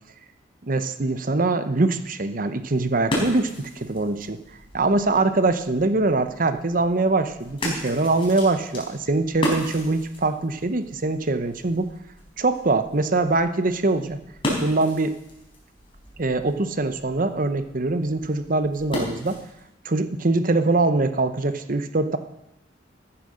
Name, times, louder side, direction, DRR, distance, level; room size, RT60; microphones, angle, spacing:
voice 1, 0.6-4.4 4.7-11.9 12.4-14.2 14.6-15.1 16.2-19.4 19.8-22.2, right 2 dB, 45° right, 10 dB, 0.8 m, -23 dB
sound 1, 2.5-19.7, left 1 dB, 30° left, 4.5 m, -35 dB
14.0 x 10.0 x 6.5 m, 0.89 s
head